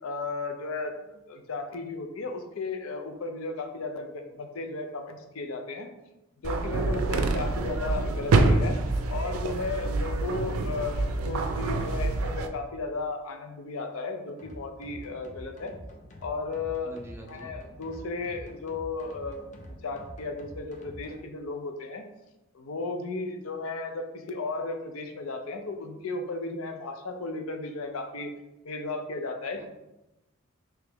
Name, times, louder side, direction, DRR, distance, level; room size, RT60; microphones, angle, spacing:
voice 1, 0.0-5.9 6.4-8.8 9.1-15.7 16.2-16.9 17.3-22.0 22.5-28.3 28.6-29.6, left 3 dB, 80° left, 5 dB, 0.5 m, -35 dB
sound 1, 6.4-12.5, right 2 dB, 90° right, 0.4 m, -26 dB
sound 2, 14.4-21.2, equal, 35° left, 0.5 m, -46 dB
voice 2, 16.8-17.6 29.5-29.6, right 1 dB, 10° right, 0 dB, 0.5 m, -45 dB
3.4 x 3.0 x 3.4 m, 0.98 s
head